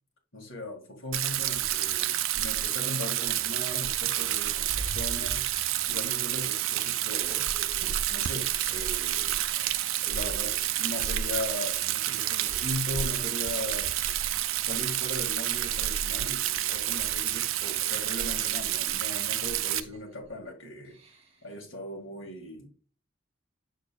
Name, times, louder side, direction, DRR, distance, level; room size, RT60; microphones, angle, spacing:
voice 1, 0.3-7.5 7.8-9.4 10.1-10.5 10.8-13.9 14.6-21.0 21.4-22.7, left 1 dB, 75° left, 1 dB, 1.9 m, -38 dB
Rain, 1.1-19.8, right 12 dB, 80° right, 0.4 m, -29 dB
sound 1, 4.1-6.0 6.5-9.1 9.5-10.7 11.2-11.5 11.8-13.1 13.6-13.9 14.4-15.0 15.5-17.4 17.8-20.5 20.8-21.5, right 1 dB, 30° right, 1.5 m, -47 dB
6.5 x 6.4 x 2.2 m, 0.39 s
head